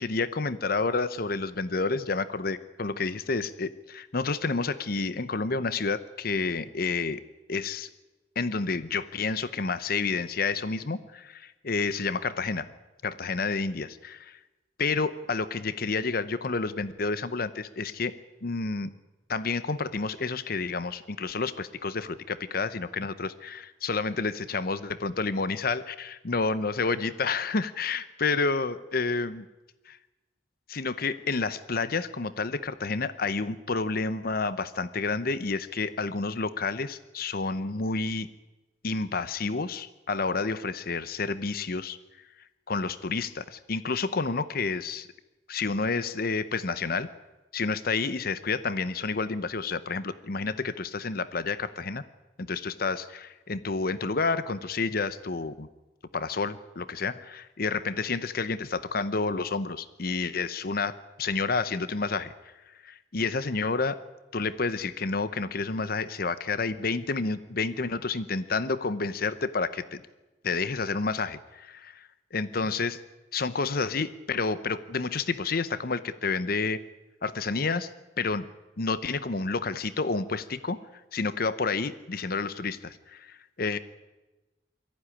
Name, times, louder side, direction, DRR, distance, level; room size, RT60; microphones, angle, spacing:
voice 1, 0.0-7.2 7.5-7.9 8.4-12.7 13.0-14.3 14.8-18.1 18.4-18.9 19.3-29.4 29.9-30.0 30.7-38.3 38.8-42.0 42.7-45.1 45.5-47.1 47.5-52.0 52.4-55.7 56.1-60.9 61.2-62.3 62.7-64.0 64.3-70.0 70.4-73.0 73.3-76.8 77.2-77.9 78.2-78.5 78.8-80.8 81.1-83.8, left 4 dB, 55° left, 15 dB, 0.9 m, -30 dB
23.0 x 15.0 x 9.9 m, 1.1 s
head